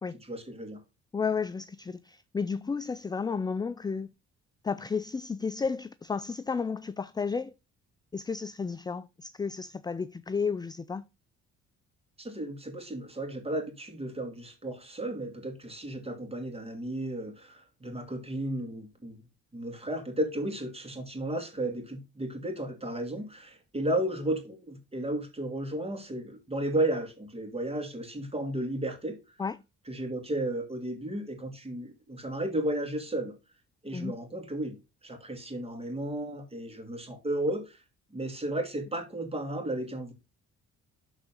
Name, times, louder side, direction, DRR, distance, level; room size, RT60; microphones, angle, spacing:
voice 1, 0.3-0.8 12.2-19.2 19.5-29.2 29.9-33.3 33.8-37.8 38.1-40.1, right 1 dB, 20° right, 2.6 m, -34 dB
voice 2, 1.1-4.1 4.6-7.5 8.1-11.0 29.4-29.6 33.9-34.1, left 5 dB, 15° left, 0.4 m, -32 dB
12.0 x 4.0 x 3.7 m
cardioid pair, 90°, 30 cm